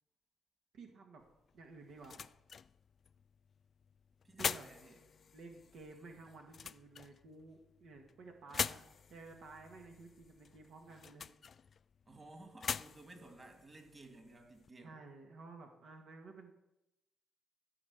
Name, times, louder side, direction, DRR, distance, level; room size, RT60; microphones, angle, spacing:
voice 1, 0.7-1.2 1.5-2.2 4.4-4.7 5.3-11.2 14.8-16.5, right 3 dB, 70° right, 2 dB, 1.7 m, -53 dB
sound 1, 1.2-14.7, left 6 dB, 45° left, 0.3 m, -45 dB
voice 2, 4.2-5.0 12.1-15.0, right 2 dB, 25° right, 3 dB, 2.6 m, -56 dB
14.0 x 5.2 x 7.9 m, 0.90 s
cardioid pair, 90°, 0 cm